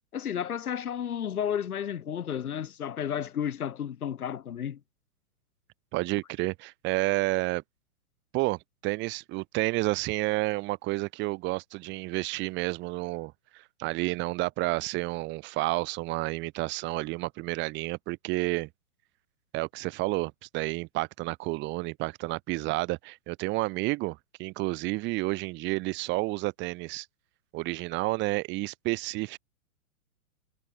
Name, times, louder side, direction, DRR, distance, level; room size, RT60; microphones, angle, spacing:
voice 1, 0.1-4.8, left 9 dB, 80° left, 2.5 m, -32 dB
voice 2, 5.9-7.6 8.3-18.7 19.5-27.1 27.5-29.4, right 22 dB, 25° right, 1.1 m, -30 dB
hypercardioid pair, 130°, 44 cm